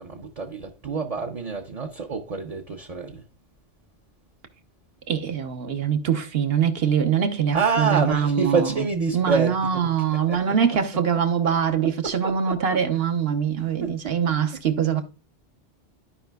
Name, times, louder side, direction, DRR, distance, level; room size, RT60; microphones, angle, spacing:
voice 1, 0.0-3.2 7.5-9.9 10.3-10.4 11.8-13.0 13.8-14.1 14.9-15.0, right 5 dB, 40° right, 0.6 m, -27 dB
voice 2, 5.1-8.8 9.1-15.0, right 7 dB, 60° right, 1.0 m, -23 dB
13.5 x 4.9 x 2.2 m
omnidirectional pair, 1.2 m